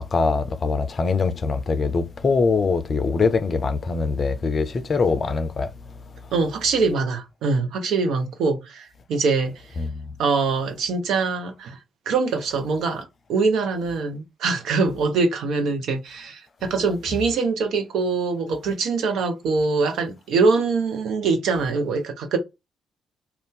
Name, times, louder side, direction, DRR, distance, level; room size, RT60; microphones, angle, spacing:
voice 1, 0.1-5.7 9.8-10.0, left 4 dB, 45° left, 0.4 m, -23 dB
voice 2, 6.3-9.6 10.2-11.8 12.1-22.4, right 4 dB, 65° right, 0.6 m, -23 dB
2.5 x 2.3 x 3.5 m
hypercardioid pair, 40°, 0 cm